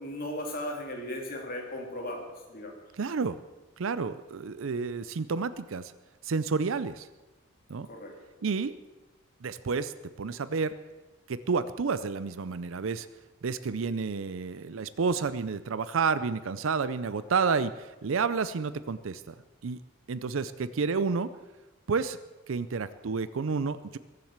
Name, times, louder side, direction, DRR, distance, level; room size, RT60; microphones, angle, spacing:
voice 1, 0.0-2.8 7.8-8.1, left 1 dB, 45° left, 1 dB, 2.9 m, -37 dB
voice 2, 3.0-3.4 3.8-5.9 6.2-7.1 7.7-7.9 8.4-8.7 9.4-10.8 11.3-13.1 13.4-19.4 19.6-19.8 20.1-21.3 21.9-22.2 22.5-24.0, right 5 dB, 70° right, 14 dB, 0.5 m, -30 dB
22.0 x 7.6 x 7.3 m, 1.2 s
head